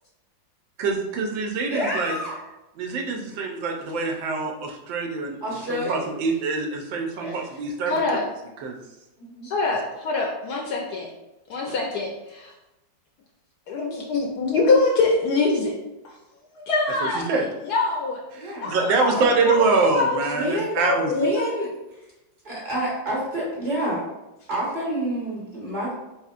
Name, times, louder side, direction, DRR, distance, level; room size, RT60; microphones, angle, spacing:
voice 1, 0.8-2.1 2.8-5.4 5.7-8.2 8.6-8.8 11.7-11.8 17.0-17.5 18.3-21.1, right 4 dB, 80° right, 1 dB, 1.4 m, -25 dB
voice 2, 1.7-2.3 5.4-6.0 7.2-7.3 9.2-9.5 18.4-18.7 20.3-20.8 21.1-22.0 22.4-24.0 24.5-25.9, right 1 dB, 30° right, -6 dB, 1.2 m, -28 dB
voice 3, 7.9-8.2 9.4-11.1 11.5-12.5 13.7-15.7 16.5-17.3 17.6-18.2 18.6-20.2 20.8-21.6, left 3 dB, 70° left, -1 dB, 1.0 m, -24 dB
4.2 x 3.7 x 2.4 m, 0.97 s
omnidirectional pair, 2.1 m